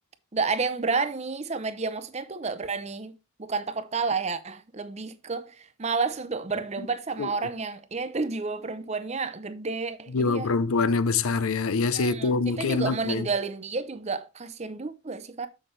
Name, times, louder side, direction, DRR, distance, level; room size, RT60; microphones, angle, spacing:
voice 1, 0.3-3.1 3.4-10.6 11.9-15.5, right 4 dB, 30° right, 0.6 m, -30 dB
voice 2, 10.1-13.3, left 4 dB, 80° left, 0.5 m, -25 dB
7.2 x 6.5 x 3.2 m
head